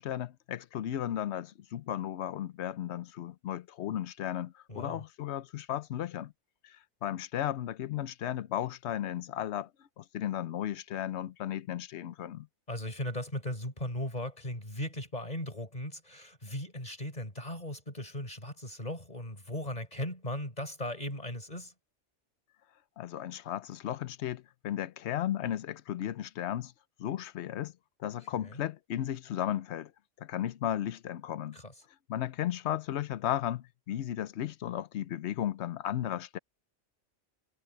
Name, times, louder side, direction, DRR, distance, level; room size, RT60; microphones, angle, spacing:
voice 1, 0.0-6.3 6.6-9.7 10.0-12.5 23.0-26.7 27.0-27.7 28.0-29.9 30.2-31.6 32.1-36.4, left 11 dB, 70° left, 1.0 m, -35 dB
voice 2, 4.7-5.0 12.7-21.7 28.4-28.6 31.5-31.7, left 1 dB, 35° left, 4.7 m, -37 dB
omnidirectional pair, 1.2 m